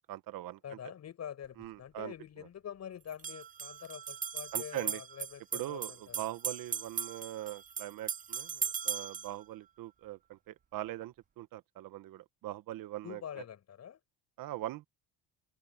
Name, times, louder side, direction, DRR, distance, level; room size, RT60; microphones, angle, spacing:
voice 1, 0.1-0.8 1.6-2.1 4.5-5.0 5.5-13.2 14.4-14.9, right 15 dB, 60° right, 1.2 m, -41 dB
voice 2, 0.6-6.3 13.0-14.0, left 9 dB, 45° left, 6.7 m, -46 dB
sound 1, 1.4-1.5 3.1-9.3, right 7 dB, 20° right, 0.6 m, -38 dB
cardioid pair, 125°, 37 cm